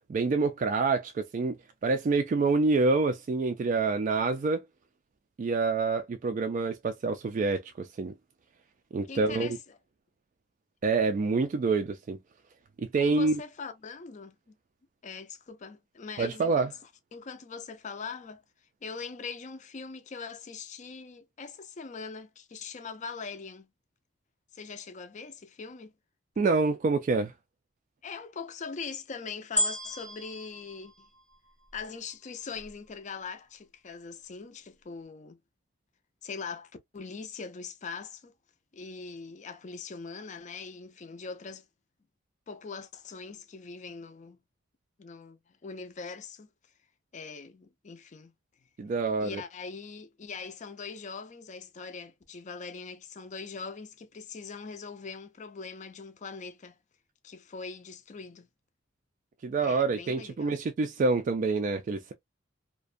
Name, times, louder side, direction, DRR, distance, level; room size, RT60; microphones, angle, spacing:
voice 1, 0.1-1.6 1.8-4.6 5.4-8.1 8.9-9.5 10.8-12.2 12.8-13.4 16.2-16.7 26.4-27.3 48.8-49.4 59.4-62.1, right 3 dB, 40° right, 0.3 m, -27 dB
voice 2, 9.1-9.8 13.0-14.5 15.0-16.7 17.1-18.4 18.8-23.7 24.5-25.9 28.0-31.1 31.7-35.4 36.2-38.3 38.7-41.7 42.5-44.4 45.0-46.5 47.1-48.3 49.2-56.8 57.2-58.5 59.6-60.6, left 5 dB, 40° left, 0.4 m, -42 dB
sound 1, 29.6-32.0 32.6-32.7, equal, 10° left, 0.7 m, -33 dB
2.5 x 2.1 x 2.4 m
head